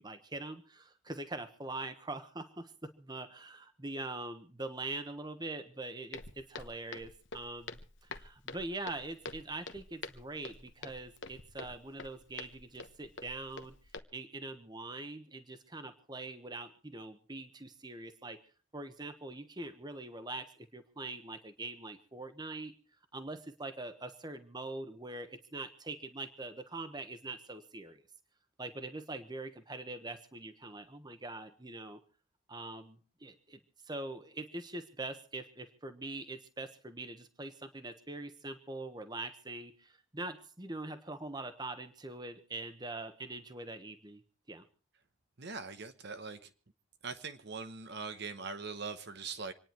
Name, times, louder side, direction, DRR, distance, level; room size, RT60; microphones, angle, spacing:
voice 1, 0.0-13.7 14.1-18.4 18.7-22.7 23.1-28.0 28.6-32.0 32.5-33.6 33.9-44.2 44.5-44.6, right 2 dB, 20° right, 1.2 m, -43 dB
Walk footsteps, 6.1-14.0, left 4 dB, 60° left, 1.1 m, -47 dB
voice 2, 45.4-46.5 47.0-49.5, right 4 dB, 55° right, 1.0 m, -42 dB
26.5 x 10.0 x 4.5 m
head